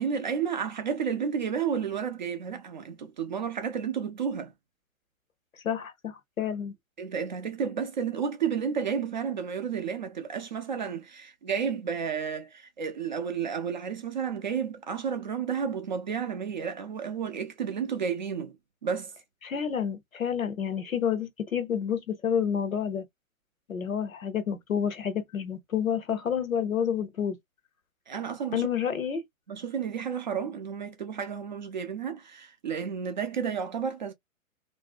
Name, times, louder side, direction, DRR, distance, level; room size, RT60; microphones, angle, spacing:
voice 1, 0.0-4.5 7.0-18.6 18.8-19.1 28.1-28.7 29.5-34.1, right 7 dB, 35° right, 0.4 m, -31 dB
voice 2, 5.6-6.7 19.4-23.0 23.7-27.4 28.5-29.2, left 8 dB, 75° left, 0.8 m, -29 dB
2.6 x 2.0 x 2.3 m
figure-of-eight pair, 115°, 41 cm